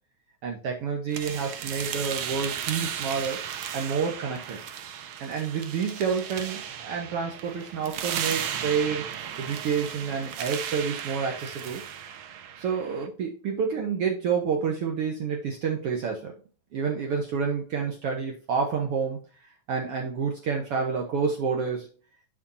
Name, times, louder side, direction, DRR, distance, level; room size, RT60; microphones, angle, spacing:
voice 1, 0.4-3.4 3.7-4.6 5.2-11.8 12.6-16.3 16.7-19.2 19.7-21.9, right 6 dB, 60° right, 1 dB, 1.8 m, -29 dB
sound 1, 1.1-13.1, right 9 dB, 75° right, 1.1 m, -35 dB
11.5 x 5.0 x 2.7 m, 0.39 s
omnidirectional pair, 3.3 m